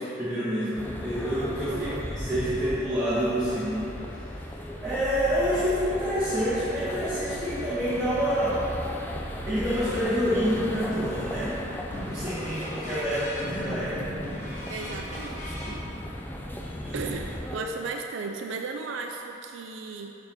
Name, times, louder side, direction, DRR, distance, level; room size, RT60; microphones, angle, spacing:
voice 1, 0.2-3.9 4.8-8.6 9.5-14.0 16.8-17.0 17.5-17.7, equal, 10° right, -14 dB, 1.4 m, -28 dB
sound 1, 0.8-17.6, equal, 10° left, 0.4 m, -37 dB
voice 2, 1.7-2.0 5.6-5.7 12.9-13.1 14.7-15.7 16.9-20.1, right 4 dB, 70° right, 3 dB, 0.3 m, -36 dB
sound 2, 10.4-11.4 11.9-15.8, equal, 35° left, 1.0 m, -38 dB
6.6 x 6.0 x 3.5 m, 2.9 s
head